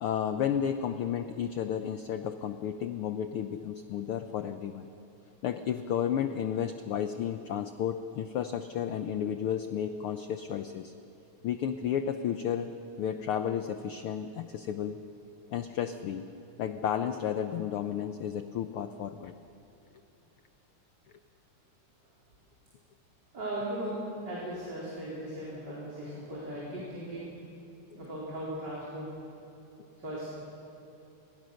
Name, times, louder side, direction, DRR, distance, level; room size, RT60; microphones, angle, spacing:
voice 1, 0.0-4.9 5.4-10.9 11.4-12.7 13.0-15.0 15.5-16.3 16.6-19.3, left 9 dB, 85° left, 9 dB, 1.2 m, -32 dB
voice 2, 23.3-27.3 27.9-29.1 30.0-30.3, right 1 dB, 35° right, -7 dB, 4.6 m, -37 dB
28.0 x 22.0 x 6.5 m, 2.7 s
omnidirectional pair, 3.4 m